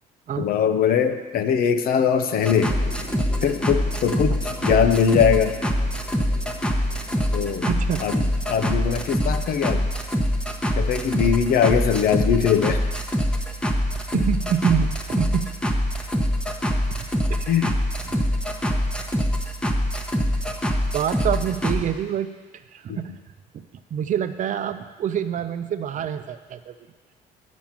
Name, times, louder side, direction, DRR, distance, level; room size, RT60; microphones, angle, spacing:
voice 1, 0.4-2.7 3.4-5.6 7.3-7.7 8.0-9.8 10.8-12.8 17.5-17.7 22.9-23.0, left 7 dB, 60° left, 9 dB, 0.7 m, -21 dB
sound 1, 2.4-10.5, left 4 dB, 80° left, 1.7 m, -41 dB
sound 2, 2.4-21.8, equal, 5° left, 1.0 m, -24 dB
voice 2, 7.7-8.0 14.1-15.5 16.9-17.8 18.0-18.2 20.9-22.3 22.7-23.2 23.9-26.7, right 9 dB, 50° right, 10 dB, 0.6 m, -26 dB
9.0 x 6.2 x 7.2 m, 1.3 s
cardioid pair, 110°, 17 cm